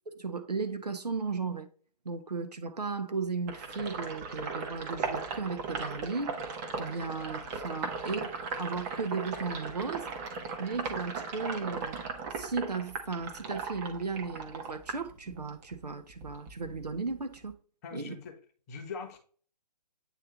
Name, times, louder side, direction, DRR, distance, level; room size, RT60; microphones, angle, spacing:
voice 1, 0.1-1.7 2.0-6.4 6.8-10.1 10.6-12.0 12.4-17.5 17.9-18.2, right 4 dB, 70° right, 1.3 m, -35 dB
Sink (filling or washing), 3.5-15.7 16.1-17.5, right 4 dB, 25° right, 1.1 m, -37 dB
voice 2, 17.8-18.3 18.7-19.2, left 5 dB, 25° left, 1.1 m, -41 dB
8.9 x 3.1 x 3.9 m
figure-of-eight pair, 135°, 21 cm